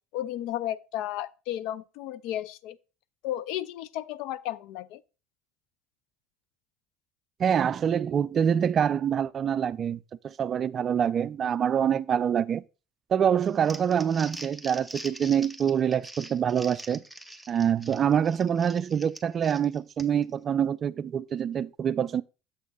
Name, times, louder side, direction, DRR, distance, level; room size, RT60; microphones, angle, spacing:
voice 1, 0.1-2.8 3.2-5.0, left 12 dB, 70° left, 0.4 m, -33 dB
voice 2, 7.4-12.6 13.1-17.0 17.5-22.2, right 8 dB, 40° right, 0.3 m, -25 dB
Crumpling crinkling, 13.4-20.3, right 1 dB, 5° right, 0.7 m, -44 dB
7.1 x 3.6 x 5.4 m
supercardioid pair, 95°, 0 cm